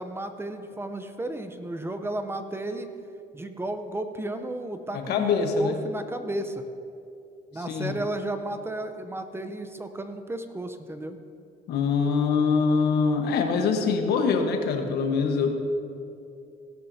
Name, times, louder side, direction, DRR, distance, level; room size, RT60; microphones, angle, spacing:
voice 1, 0.0-2.9 3.3-6.6 7.5-11.2, right 1 dB, 15° right, 8 dB, 0.7 m, -33 dB
voice 2, 4.9-5.8 7.7-7.9 11.7-15.5, left 5 dB, 75° left, 4 dB, 1.3 m, -24 dB
17.0 x 11.5 x 2.8 m, 2.7 s
cardioid pair, 110°, 17 cm